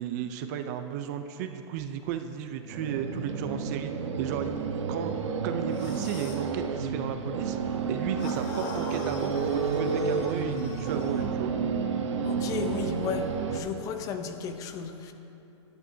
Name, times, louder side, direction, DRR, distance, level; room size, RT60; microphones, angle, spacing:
voice 1, 0.0-3.9 4.2-5.1 5.4-7.6 7.9-11.5, right 9 dB, 35° right, 7 dB, 0.5 m, -34 dB
sound 1, 2.7-13.6, right 5 dB, 80° right, 1.1 m, -30 dB
sound 2, 5.7-6.5 8.2-11.3, left 5 dB, 40° left, 1.1 m, -43 dB
voice 2, 12.2-15.1, left 6 dB, 20° left, 7 dB, 0.6 m, -34 dB
18.0 x 10.5 x 2.8 m, 2.9 s
hypercardioid pair, 155°, 15 cm